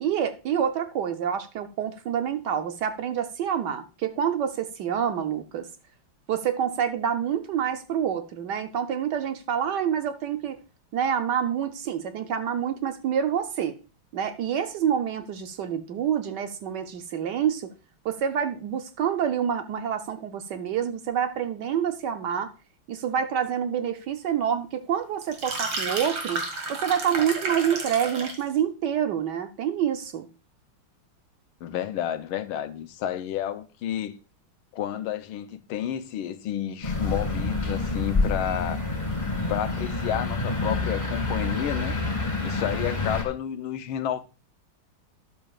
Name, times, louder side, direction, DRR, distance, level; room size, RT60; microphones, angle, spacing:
voice 1, 0.0-5.7 6.3-10.6 10.9-13.7 14.1-17.7 18.0-22.5 22.9-26.4 26.7-30.3, right 8 dB, 65° right, 1.2 m, -27 dB
sound 1, 25.2-28.5, right 3 dB, 85° right, 2.8 m, -31 dB
voice 2, 31.6-34.2 34.7-38.9 39.5-42.0 42.4-44.2, left 10 dB, 85° left, 1.6 m, -30 dB
sound 2, 36.8-43.2, left 3 dB, 15° left, 2.1 m, -28 dB
12.5 x 11.0 x 2.4 m
omnidirectional pair, 2.3 m